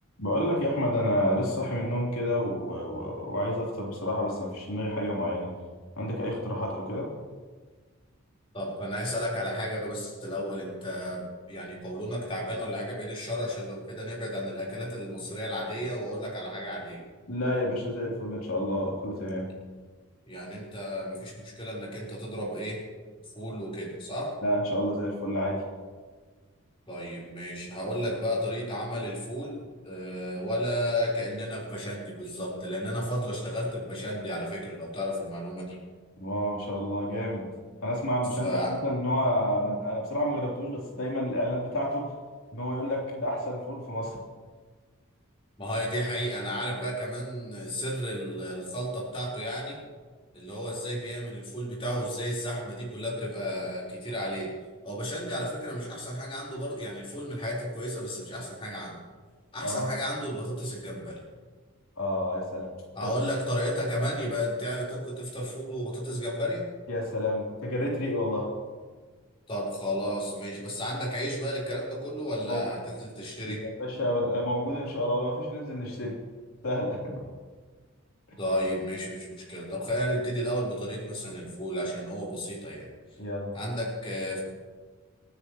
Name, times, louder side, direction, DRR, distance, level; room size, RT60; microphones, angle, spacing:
voice 1, 0.2-5.5 6.0-7.1 17.3-19.5 24.4-25.6 36.2-37.5 37.8-42.1 42.5-44.2 59.6-59.9 62.0-62.7 63.0-63.1 66.9-68.5 72.5-72.6 73.4-76.2 76.6-77.2 83.2-83.5, equal, 90° left, -3 dB, 3.2 m, -29 dB
voice 2, 8.5-17.0 20.3-22.8 23.3-24.3 26.9-35.8 38.4-38.7 45.6-49.8 50.3-54.5 54.8-59.0 59.5-61.2 62.9-66.6 69.5-73.7 78.4-82.9 83.5-84.4, equal, 25° left, -5 dB, 3.8 m, -33 dB
26.5 x 9.8 x 3.0 m, 1.5 s
head